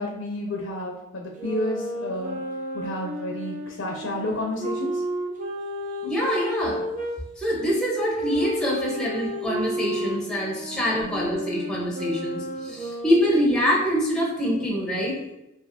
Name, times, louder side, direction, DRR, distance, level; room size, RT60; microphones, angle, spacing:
voice 1, 0.0-2.4 2.7-5.0 10.7-11.2, left 1 dB, 75° left, 1 dB, 0.5 m, -31 dB
sound 1, 1.4-7.2 7.9-13.5, equal, 40° right, 0.6 m, -32 dB
voice 2, 6.0-6.8 7.4-15.1, equal, 5° left, -4 dB, 0.9 m, -25 dB
5.6 x 2.5 x 2.7 m, 0.94 s
head